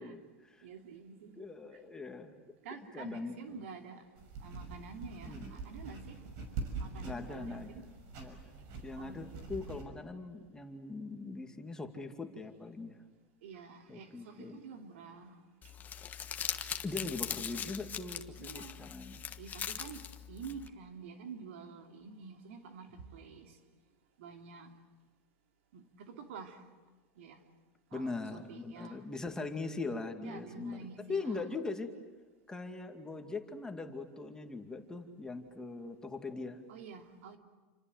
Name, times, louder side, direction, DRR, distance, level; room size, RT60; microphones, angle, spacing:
voice 1, 0.0-0.7 1.4-2.6 2.9-3.6 5.3-5.5 7.0-7.9 8.2-8.4 8.8-13.0 13.9-14.6 16.8-19.2 27.9-31.9 32.5-36.6, left 3 dB, 10° left, 4 dB, 2.4 m, -41 dB
voice 2, 0.6-1.3 1.7-1.8 2.6-6.3 6.8-7.9 9.0-9.5 13.4-15.7 18.4-18.8 19.4-23.6 24.2-24.8 25.7-26.7 27.2-27.4 27.9-29.1 30.2-31.4 36.7-37.4, right 5 dB, 80° right, 5 dB, 2.9 m, -49 dB
sound 1, 4.2-9.8, right 4 dB, 60° right, 6.3 m, -44 dB
Crumpling crinkling, 15.6-20.7, left 8 dB, 25° left, 1.4 m, -41 dB
28.5 x 26.0 x 7.9 m, 1.3 s
supercardioid pair, 130°, 7 cm